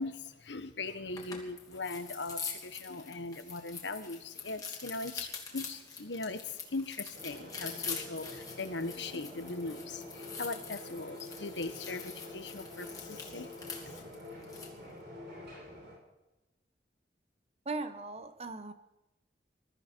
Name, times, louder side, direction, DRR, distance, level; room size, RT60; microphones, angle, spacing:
voice 1, 0.0-14.0, left 3 dB, 85° left, 10 dB, 1.4 m, -40 dB
sound 1, 1.1-14.8, left 5 dB, 20° left, 2.9 m, -44 dB
sound 2, 7.1-16.0, left 1 dB, 65° right, 7.8 m, -47 dB
voice 2, 17.6-18.7, right 3 dB, 35° right, 9 dB, 1.2 m, -38 dB
21.5 x 14.0 x 4.6 m, 1.0 s
head